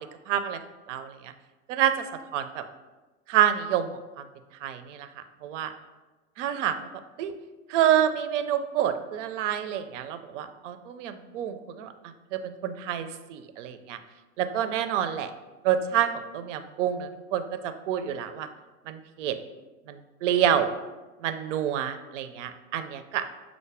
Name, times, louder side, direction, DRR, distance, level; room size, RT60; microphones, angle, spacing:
voice 1, 0.3-0.6 0.9-1.3 1.7-1.9 2.3-2.6 3.3-4.2 4.6-5.1 5.4-5.7 6.4-6.8 7.2-7.3 7.7-11.9 12.3-14.0 14.4-15.3 15.6-18.5 18.9-19.4 19.9-20.7 21.2-23.2, right 10 dB, 55° right, 9 dB, 0.5 m, -27 dB
5.8 x 2.0 x 3.3 m, 1.2 s
hypercardioid pair, 100°, 45 cm